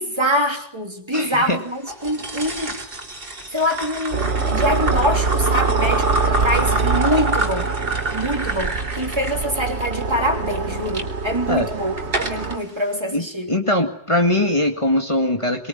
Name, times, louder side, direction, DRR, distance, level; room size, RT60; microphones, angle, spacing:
voice 1, 0.0-2.8 3.5-7.7 8.1-13.5, equal, 25° right, 4 dB, 3.2 m, -24 dB
voice 2, 1.1-1.6 11.5-11.7 13.1-15.7, left 1 dB, 25° left, 4 dB, 2.1 m, -21 dB
sound 1, 1.9-11.0 11.6-12.5, right 1 dB, 50° right, 3.3 m, -29 dB
sound 2, 4.1-12.6, right 4 dB, 70° right, 1.8 m, -23 dB
24.0 x 23.0 x 9.4 m, 0.66 s
omnidirectional pair, 1.2 m